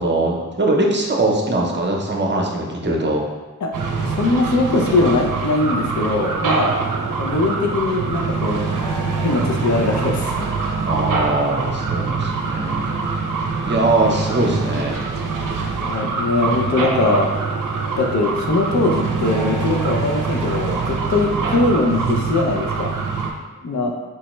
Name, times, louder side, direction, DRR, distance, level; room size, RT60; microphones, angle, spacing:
voice 1, 0.0-3.2 5.6-5.8 10.8-12.8 13.6-15.0, right 2 dB, 35° right, 0 dB, 0.6 m, -21 dB
sound 1, 3.7-23.3, right 4 dB, 90° right, 0.5 m, -24 dB
voice 2, 4.2-6.7 7.2-8.7 9.1-10.3 10.7-10.9 14.7-14.8 15.8-17.3 18.0-22.9 23.6-23.9, left 2 dB, 65° left, 2 dB, 0.5 m, -21 dB
4.6 x 2.1 x 3.0 m, 1.2 s
wide cardioid pair, 50°, 31 cm